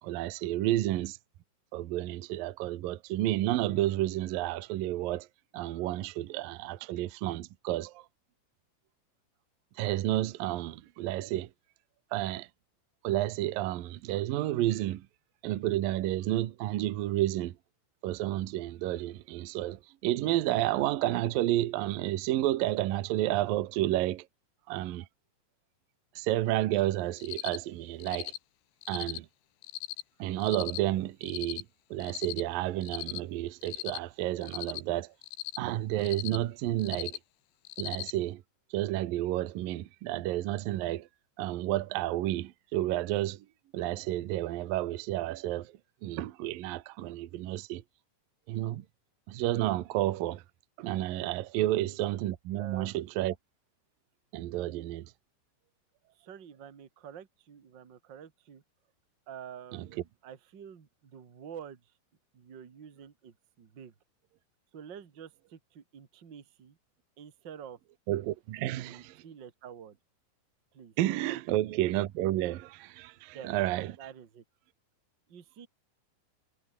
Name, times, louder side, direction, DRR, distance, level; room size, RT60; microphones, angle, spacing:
voice 1, 0.0-1.2 1.7-5.3 5.5-8.0 9.8-11.5 12.1-12.5 13.0-15.1 15.4-17.6 18.0-24.3 24.7-25.1 26.2-28.3 28.9-29.3 30.2-31.6 31.9-35.1 35.6-37.2 37.8-38.4 38.7-41.1 41.4-43.4 43.7-45.7 46.0-47.8 48.5-48.8 49.3-50.4 50.8-53.4 54.3-55.1 59.7-59.9 68.1-69.2 71.0-74.0, right 15 dB, 85° right, 2.0 m, -31 dB
Cricket, 27.2-27.6 28.0-28.4 28.8-29.2 29.6-30.0 30.4-30.8 31.2-31.6 32.0-32.4 32.8-33.2 33.6-34.0 34.4-34.8 35.2-35.6 36.0-36.4 36.8-37.2 37.7-38.1, left 18 dB, 75° left, 3.1 m, -38 dB
voice 2, 51.6-52.0 52.6-53.0 56.1-58.6 59.3-61.8 62.3-63.9 64.7-66.8 67.2-67.8 68.5-70.0 70.7-70.9 71.3-71.4 73.3-73.6 74.0-74.4 75.3-75.7, right 8 dB, 65° right, 1.1 m, -48 dB
omnidirectional pair, 6.0 m